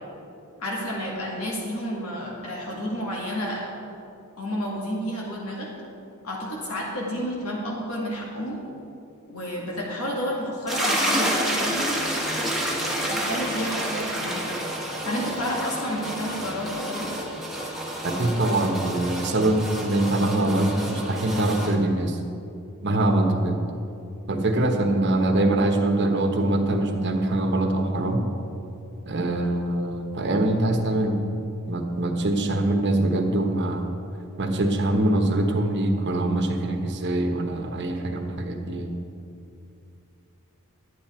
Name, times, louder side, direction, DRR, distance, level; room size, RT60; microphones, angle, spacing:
voice 1, 0.6-3.7 4.4-5.7 6.2-8.6 9.3-12.1 13.1-14.5 15.0-17.1, equal, 85° left, -3 dB, 2.0 m, -30 dB
sound 1, 10.7-21.7, right 1 dB, ahead, 1.2 m, -29 dB
voice 2, 18.0-22.2 22.8-23.6 24.3-28.2 29.0-31.2 31.7-33.9 34.4-38.9, right 1 dB, 55° right, 3 dB, 1.1 m, -23 dB
11.5 x 9.1 x 4.4 m, 2.7 s
head